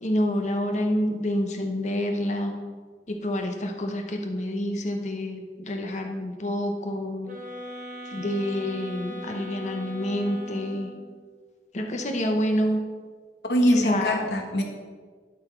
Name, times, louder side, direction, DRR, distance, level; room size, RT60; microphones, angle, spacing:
voice 1, 0.0-2.5 3.1-7.4 8.1-10.9 11.7-12.8 13.6-14.3, left 1 dB, 40° left, 3 dB, 0.8 m, -27 dB
sound 1, 7.2-11.1, equal, 45° right, 1.4 m, -40 dB
voice 2, 13.5-14.6, equal, 70° left, 3 dB, 1.2 m, -23 dB
11.5 x 4.0 x 4.5 m, 1.5 s
head